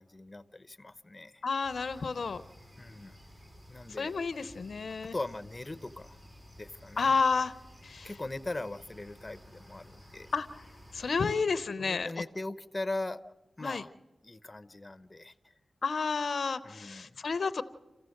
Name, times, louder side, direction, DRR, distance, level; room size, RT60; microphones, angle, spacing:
voice 1, 0.0-1.4 2.8-3.2 3.7-4.2 5.1-6.2 6.6-7.1 8.0-10.3 11.8-13.9 14.2-15.5 16.6-17.2, left 2 dB, 30° left, 14 dB, 0.8 m, -40 dB
voice 2, 1.4-2.4 4.0-5.1 7.0-7.5 7.8-8.1 10.3-10.5 10.9-12.1 13.6-13.8 15.8-17.6, left 4 dB, 70° left, 15 dB, 0.6 m, -30 dB
sound 1, 1.6-11.4, equal, 30° right, 6.8 m, -54 dB
27.5 x 15.0 x 6.5 m, 1.1 s
cardioid pair, 50°, 0 cm